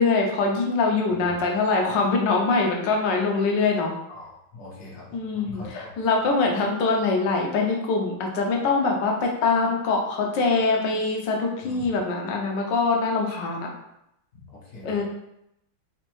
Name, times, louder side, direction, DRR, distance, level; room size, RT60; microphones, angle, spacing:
voice 1, 0.0-3.9 5.1-13.7 14.8-15.0, left 4 dB, 75° left, 1 dB, 1.3 m, -23 dB
voice 2, 4.1-5.1 5.3-5.9 11.6-11.9 14.3-15.0, left 2 dB, 55° left, -5 dB, 1.2 m, -42 dB
4.1 x 2.6 x 2.9 m, 0.81 s
omnidirectional pair, 2.0 m